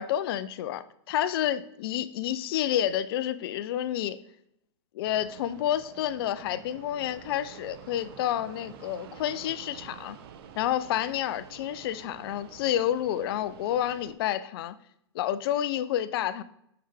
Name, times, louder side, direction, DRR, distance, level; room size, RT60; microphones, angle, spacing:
voice 1, 0.0-4.2 4.9-10.2 10.6-14.7 15.1-16.4, left 11 dB, 55° left, 0.5 m, -29 dB
Fixed-wing aircraft airplane, 5.1-14.1, right 8 dB, 55° right, 0.6 m, -48 dB
5.7 x 5.5 x 3.3 m
hypercardioid pair, 125°, 15 cm